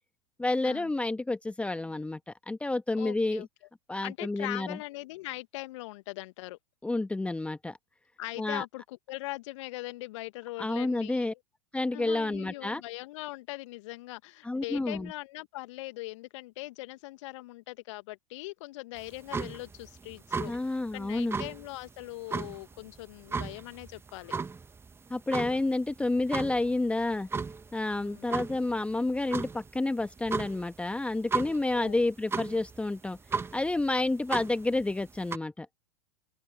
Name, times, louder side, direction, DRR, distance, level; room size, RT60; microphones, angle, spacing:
voice 1, 0.4-3.5 3.9-4.8 6.8-7.8 8.4-8.6 10.6-11.3 11.7-12.8 14.4-15.1 20.4-21.4 25.1-27.3 27.7-33.2 33.5-35.7, left 2 dB, 5° left, 1.4 m, -30 dB
voice 2, 2.9-3.5 4.0-6.6 8.2-11.3 11.9-24.3 28.0-28.2 31.7-32.0, left 19 dB, 55° left, 1.5 m, -41 dB
sound 1, 19.0-35.4, right 4 dB, 15° right, 1.6 m, -37 dB
open air
figure-of-eight pair, 95°, 19 cm